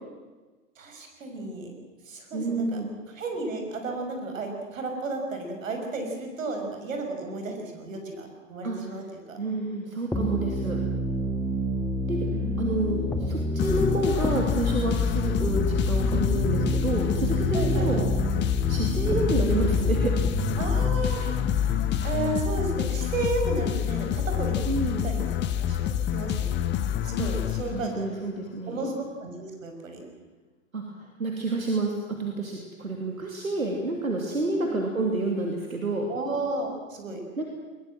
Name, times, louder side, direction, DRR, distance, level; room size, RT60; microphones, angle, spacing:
voice 1, 0.8-1.7 2.0-2.8 3.1-9.4 12.2-13.2 13.7-14.0 17.5-18.1 20.6-21.4 21.7-26.8 27.0-28.1 28.7-28.9 29.2-30.0 34.4-34.8 36.1-37.2, right 2 dB, 70° right, 3 dB, 6.3 m, -33 dB
voice 2, 2.3-2.9 8.6-8.8 9.4-10.8 12.1-12.2 12.6-18.0 18.7-20.1 24.7-25.1 27.2-27.3 27.7-28.8 30.7-36.1 37.4-37.5, right 2 dB, 90° right, 1 dB, 3.0 m, -29 dB
sound 1, 10.1-22.1, left 1 dB, 5° left, 1.9 m, -28 dB
sound 2, 13.6-28.2, left 10 dB, 25° left, 1.2 m, -28 dB
21.5 x 21.0 x 7.8 m, 1.3 s
figure-of-eight pair, 105°, 41 cm